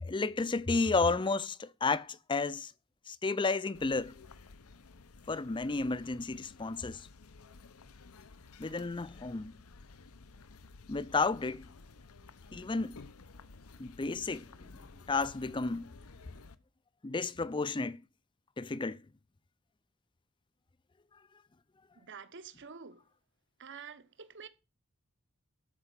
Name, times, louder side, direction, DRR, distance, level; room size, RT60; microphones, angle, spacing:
voice 1, 0.0-2.7 3.1-4.1 5.3-7.1 8.6-9.6 10.9-11.7 12.5-13.0 13.8-14.8 15.1-15.9 17.0-18.0 18.6-19.0, left 3 dB, 20° left, 0.5 m, -32 dB
sound 1, 3.7-16.6, left 4 dB, 80° left, 0.8 m, -54 dB
voice 2, 22.0-23.0 23.6-24.5, right 6 dB, 55° right, 1.0 m, -48 dB
13.0 x 5.0 x 8.2 m
head